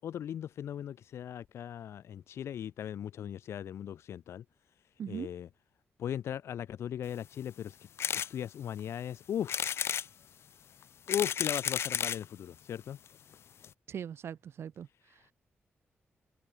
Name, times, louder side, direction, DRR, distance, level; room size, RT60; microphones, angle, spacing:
voice 1, 0.0-4.4 5.1-5.5 6.0-7.8 8.1-9.8 11.1-13.0, left 9 dB, 90° left, 0.8 m, -38 dB
sound 1, 8.0-8.3 8.8-8.9 9.5-10.1 10.8-12.2 13.1-13.2 13.3-13.4 13.6-13.7, left 8 dB, 75° left, 2.2 m, -32 dB
voice 2, 13.9-15.2, right 8 dB, 75° right, 5.1 m, -41 dB
open air
wide cardioid pair, 145°, 4 cm